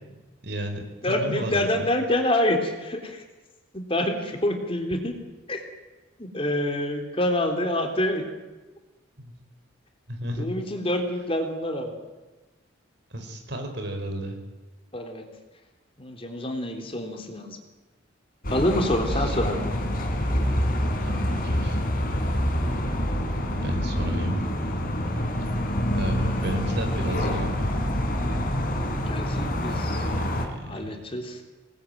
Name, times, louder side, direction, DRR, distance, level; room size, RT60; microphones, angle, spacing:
voice 1, 0.4-1.9 9.2-9.3 10.1-10.5 13.1-14.4 19.1-19.4 21.0-21.8 23.6-24.4 25.9-27.7 29.8-30.9, right 1 dB, 60° right, 5 dB, 4.9 m, -33 dB
voice 2, 1.0-3.2 3.7-5.1 5.5-5.6 6.2-8.2 10.3-12.0 14.9-15.2 16.0-17.6 18.5-19.6 29.1-30.0 30.6-31.4, left 1 dB, 30° left, 4 dB, 3.5 m, -27 dB
sound 1, 18.4-30.5, equal, 45° left, 4.2 m, -26 dB
26.0 x 20.0 x 9.2 m, 1.2 s
head